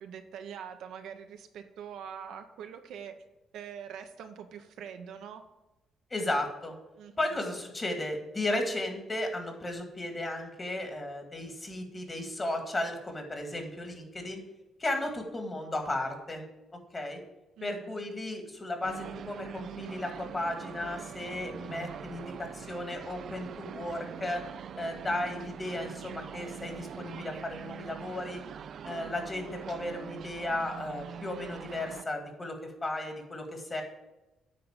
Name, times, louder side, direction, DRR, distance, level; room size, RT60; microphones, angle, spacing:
voice 1, 0.0-3.1 3.5-5.4 7.0-7.4 17.6-18.1, right 8 dB, 80° right, 6 dB, 0.9 m, -44 dB
voice 2, 6.1-6.8 7.2-14.4 14.8-16.4 16.9-17.2 17.6-24.4 24.8-28.4 28.8-33.8, left 1 dB, 25° left, 4 dB, 1.9 m, -35 dB
sound 1, 18.8-32.0, right 8 dB, 60° right, 0.4 m, -43 dB
9.4 x 3.9 x 7.3 m, 1.0 s
cardioid pair, 90°, 0 cm